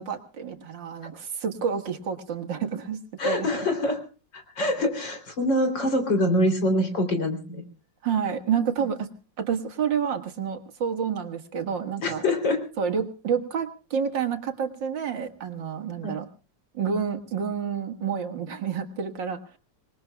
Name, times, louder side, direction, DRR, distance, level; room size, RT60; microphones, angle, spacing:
voice 1, 0.0-3.5 8.0-9.1 9.4-12.3 12.8-16.3 16.7-19.4, right 7 dB, 80° right, 5 dB, 2.4 m, -29 dB
voice 2, 3.2-4.0 4.3-7.6 12.0-12.6 16.0-16.2, left 1 dB, 80° left, 6 dB, 4.0 m, -25 dB
26.5 x 20.0 x 2.3 m, 0.36 s
omnidirectional pair, 2.0 m